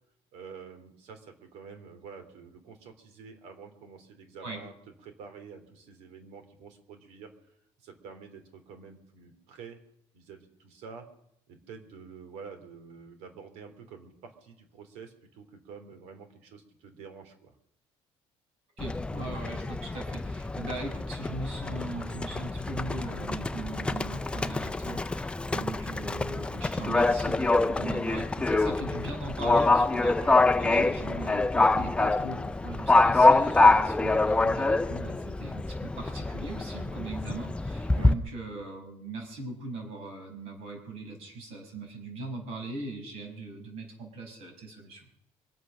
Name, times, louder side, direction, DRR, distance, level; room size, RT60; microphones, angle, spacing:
voice 1, 0.3-4.7 5.0-7.3 7.8-9.8 10.1-11.1 11.5-17.5 25.6-25.8 30.2-30.5 37.9-38.1, right 5 dB, 85° right, 7 dB, 3.2 m, -48 dB
Livestock farm animals working animals, 18.8-38.1, left 2 dB, 10° left, 0.5 m, -26 dB
voice 2, 18.8-45.1, right 2 dB, 65° right, 3 dB, 5.8 m, -40 dB
25.0 x 8.5 x 6.4 m, 0.74 s
cardioid pair, 150°, 11 cm